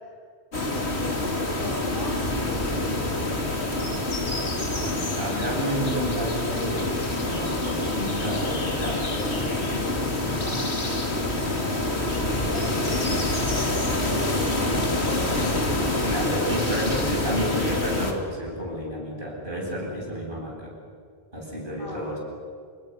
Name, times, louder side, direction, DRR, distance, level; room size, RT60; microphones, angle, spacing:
sound 1, 0.5-18.1, left 2 dB, 85° left, 3.3 m, -26 dB
voice 1, 0.5-4.0 10.4-15.3 21.8-22.2, equal, 55° left, -2 dB, 8.1 m, -38 dB
voice 2, 5.0-9.9 14.6-15.1 16.0-20.7 21.3-22.2, equal, 50° right, -3 dB, 8.4 m, -31 dB
29.0 x 28.5 x 6.7 m, 2.2 s
omnidirectional pair, 1.1 m